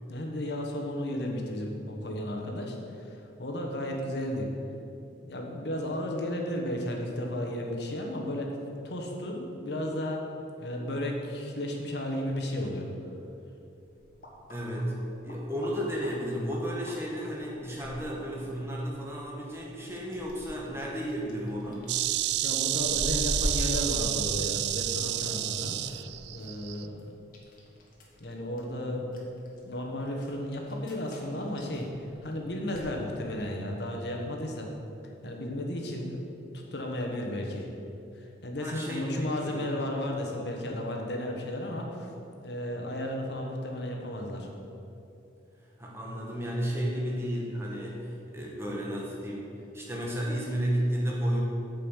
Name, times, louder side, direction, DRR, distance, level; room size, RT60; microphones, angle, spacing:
voice 1, 0.1-4.5 5.2-8.6 8.8-10.2 10.6-12.9 22.4-26.0 26.3-27.2 28.2-29.1 29.6-31.9 32.2-34.7 35.2-36.3 36.7-37.7 38.1-42.1 42.4-44.5, left 1 dB, 65° left, 1 dB, 1.4 m, -34 dB
sound 1, 13.7-32.9, equal, 45° left, 1.5 m, -42 dB
voice 2, 14.5-15.0 15.2-21.9 38.6-39.7 45.8-49.4 49.7-51.4, equal, 15° right, -3 dB, 1.5 m, -33 dB
Insect, 21.9-26.9, right 13 dB, 60° right, 0.3 m, -30 dB
8.8 x 5.6 x 7.4 m, 2.8 s
head